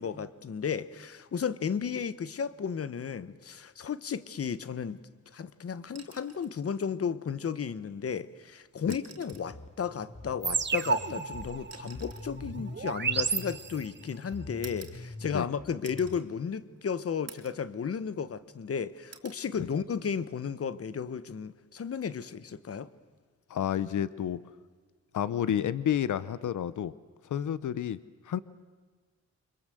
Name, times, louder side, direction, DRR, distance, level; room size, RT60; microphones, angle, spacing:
voice 1, 0.0-5.0 5.3-22.9, left 6 dB, 50° left, 1.1 m, -34 dB
sound 1, 5.9-6.6 8.0-8.1 8.8-9.6 10.7-13.8 14.6-15.5 15.8-16.3 16.7-16.8 17.3-17.7 18.1-18.7 19.1-19.4 20.9-21.1, right 6 dB, 55° right, 3.0 m, -51 dB
sound 2, 9.3-16.2, left 3 dB, 20° left, 1.1 m, -45 dB
sound 3, 10.4-14.1, right 5 dB, 40° right, 1.2 m, -32 dB
voice 2, 23.5-24.4 25.1-26.9 27.2-28.0 28.2-28.4, left 10 dB, 90° left, 0.8 m, -30 dB
29.0 x 25.5 x 7.8 m
wide cardioid pair, 135°, 29 cm